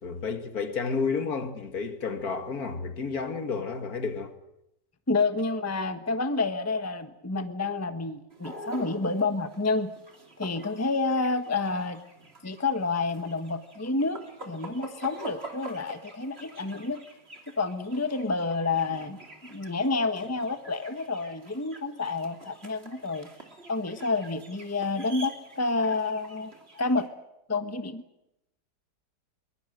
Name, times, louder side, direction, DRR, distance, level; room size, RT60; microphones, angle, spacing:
voice 1, 0.0-4.3, left 5 dB, 60° left, 2.3 m, -31 dB
voice 2, 5.1-9.9 10.4-12.0 12.4-17.0 17.6-23.3 23.7-26.5 26.8-27.1 27.5-28.0, left 3 dB, 10° left, 1.1 m, -29 dB
sound 1, 8.3-27.1, right 2 dB, 35° right, 3.4 m, -46 dB
22.5 x 22.0 x 7.9 m
omnidirectional pair, 1.8 m